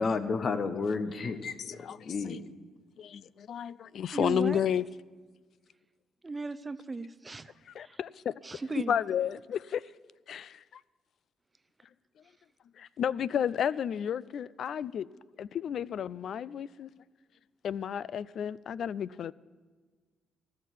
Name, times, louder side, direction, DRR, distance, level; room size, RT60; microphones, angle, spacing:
voice 1, 0.0-1.8 2.0-2.4, left 4 dB, 45° left, 12 dB, 0.9 m, -31 dB
voice 2, 1.6-2.4 3.0-4.8 7.7-9.8 10.3-10.8 12.8-15.1 15.4-16.9 17.6-19.3, left 9 dB, 65° left, 21 dB, 0.3 m, -32 dB
voice 3, 4.1-4.6 6.2-7.5 7.8-8.0 8.4-9.0, right 3 dB, 25° right, 14 dB, 0.5 m, -36 dB
14.0 x 6.6 x 9.1 m, 1.4 s
cardioid pair, 90°, 0 cm